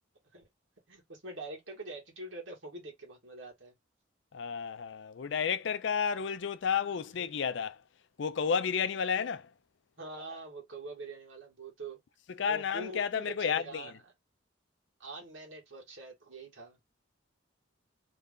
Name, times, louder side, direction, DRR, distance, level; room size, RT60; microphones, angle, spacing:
voice 1, 0.9-3.8 6.9-7.3 10.0-12.0 12.5-13.9 15.0-16.8, right 2 dB, 70° right, 1.8 m, -45 dB
voice 2, 4.3-7.8 8.2-9.5 12.4-13.9, left 6 dB, 60° left, 0.4 m, -31 dB
3.3 x 2.5 x 3.6 m
head